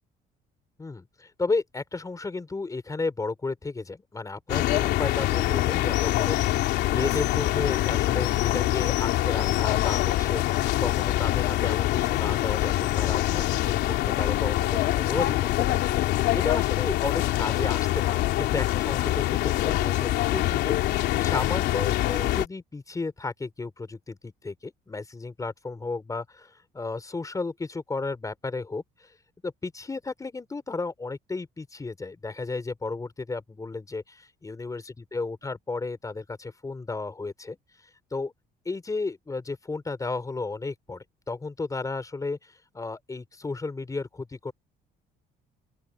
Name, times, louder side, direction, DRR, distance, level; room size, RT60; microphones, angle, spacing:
voice 1, 0.8-26.5 26.7-29.1 29.4-34.8 35.1-37.6 38.1-38.3 38.6-44.5, left 3 dB, 20° left, 4.1 m, -33 dB
sound 1, 4.5-22.5, left 15 dB, 85° left, 3.2 m, -25 dB
open air
cardioid pair, 110°, 17 cm